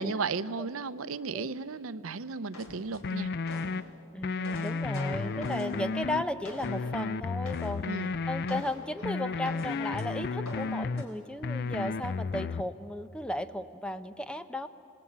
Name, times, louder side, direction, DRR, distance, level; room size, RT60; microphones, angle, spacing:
voice 1, 0.0-3.3 7.9-8.1, right 4 dB, 75° right, 15 dB, 0.6 m, -34 dB
sound 1, 2.5-3.8 4.2-7.0 7.4-7.9 8.5-10.1 10.4-11.1, left 1 dB, 80° left, 3.9 m, -45 dB
sound 2, 3.0-3.8 4.2-6.2 6.6-8.6 9.0-11.0 11.4-12.6, left 4 dB, 50° left, 0.5 m, -33 dB
voice 2, 4.1-7.8 8.3-14.7, left 1 dB, 5° left, 10 dB, 0.6 m, -35 dB
26.0 x 20.0 x 8.8 m, 2.8 s
head